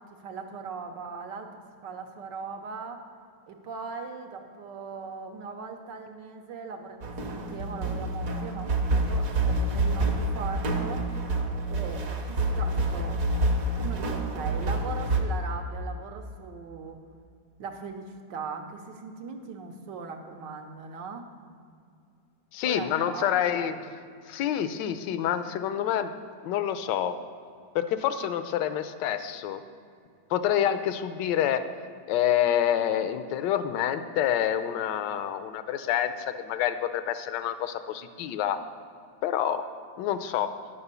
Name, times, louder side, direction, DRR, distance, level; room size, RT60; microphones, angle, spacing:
voice 1, 0.0-3.0 3.5-11.1 11.7-13.2 13.8-17.0 17.6-21.2 22.6-23.8 30.5-30.8, right 5 dB, 75° right, 5 dB, 1.6 m, -39 dB
sound 1, 7.0-15.2, right 2 dB, 50° right, 1.4 m, -27 dB
voice 2, 22.5-23.7 24.3-26.1 26.4-27.2 27.7-29.6 30.3-31.6 32.1-38.6 39.2-39.6 40.0-40.5, left 10 dB, 80° left, 10 dB, 1.2 m, -27 dB
10.5 x 7.0 x 6.8 m, 2.3 s
omnidirectional pair, 2.0 m